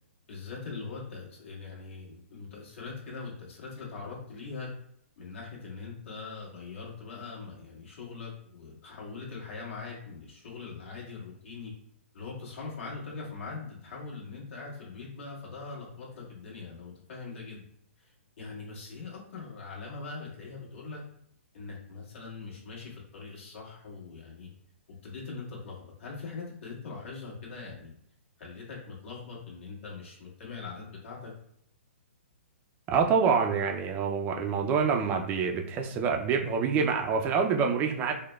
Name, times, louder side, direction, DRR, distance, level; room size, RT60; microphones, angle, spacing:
voice 1, 0.3-4.7 5.2-11.7 12.1-17.6 18.0-21.0 21.5-24.5 25.0-27.9 28.4-31.3, left 4 dB, 60° left, -4 dB, 1.5 m, -42 dB
voice 2, 32.9-38.1, right 6 dB, 25° right, 3 dB, 0.4 m, -26 dB
4.7 x 2.1 x 2.2 m, 0.69 s
hypercardioid pair, 135°, 7 cm